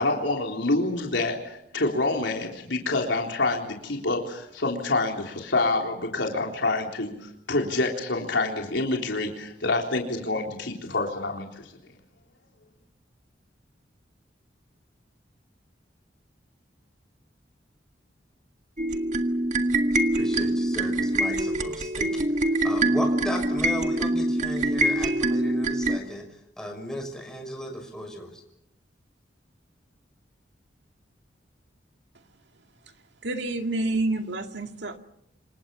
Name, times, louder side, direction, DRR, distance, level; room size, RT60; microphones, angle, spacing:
voice 1, 0.0-11.7, left 2 dB, 85° left, 1 dB, 3.8 m, -27 dB
sound 1, 18.8-26.0, right 1 dB, 40° right, 1.8 m, -24 dB
voice 2, 20.1-22.2 22.6-26.3 26.6-28.4, equal, 5° left, 2 dB, 6.2 m, -35 dB
voice 3, 33.2-35.0, right 2 dB, 70° right, 5 dB, 2.2 m, -28 dB
27.0 x 24.5 x 7.0 m, 0.80 s
head